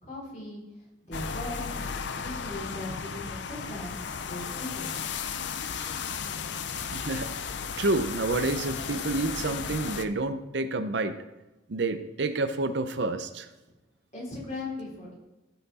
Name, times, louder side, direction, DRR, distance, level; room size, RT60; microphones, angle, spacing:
voice 1, 0.0-1.8 2.1-5.0 14.1-15.1, left 2 dB, 40° left, -5 dB, 3.7 m, -39 dB
sound 1, 1.1-10.1, left 6 dB, 65° left, 0.6 m, -35 dB
voice 2, 6.7-7.3 7.8-11.2 11.7-13.5, right 2 dB, 65° right, 9 dB, 0.6 m, -29 dB
15.5 x 5.8 x 4.1 m, 1.0 s
head